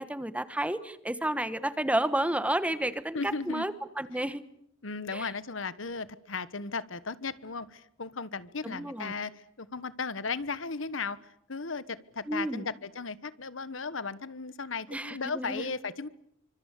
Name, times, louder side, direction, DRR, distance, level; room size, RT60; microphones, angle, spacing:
voice 1, 0.0-4.4 5.1-5.3 8.6-9.1 12.3-12.7 14.9-15.7, right 1 dB, 5° right, 13 dB, 1.3 m, -31 dB
voice 2, 3.1-3.6 4.1-4.2 4.8-9.3 9.6-11.2 11.5-16.1, left 4 dB, 70° left, 16 dB, 1.3 m, -36 dB
27.5 x 25.5 x 8.5 m, 0.72 s
head